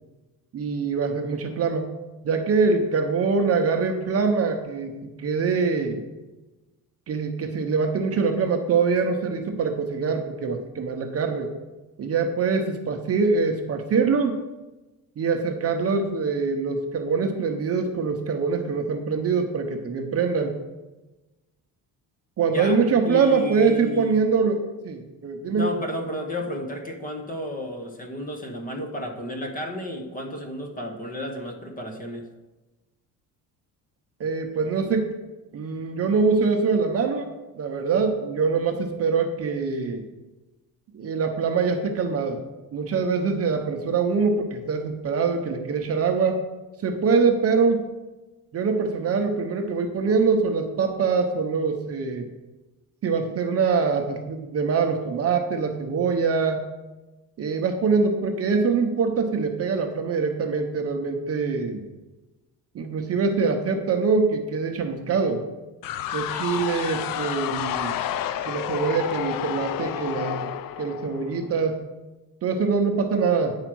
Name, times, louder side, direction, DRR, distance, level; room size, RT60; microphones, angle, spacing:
voice 1, 0.5-1.9 2.2-6.0 7.1-11.5 12.0-14.4 15.2-20.5 22.4-25.7 34.2-35.1 35.5-40.0 40.9-42.4 42.7-46.4 46.8-47.8 48.5-52.2 53.0-56.6 57.4-61.9 62.7-65.4 66.1-68.0 68.4-70.5 70.8-71.8 72.4-73.6, right 5 dB, 40° right, 5 dB, 0.8 m, -24 dB
voice 2, 23.0-24.2 25.6-32.2, left 1 dB, 20° left, 3 dB, 1.1 m, -32 dB
sound 1, 65.8-71.6, left 11 dB, 60° left, 0.5 m, -30 dB
9.1 x 4.9 x 6.1 m, 1.1 s
cardioid pair, 165°, 38 cm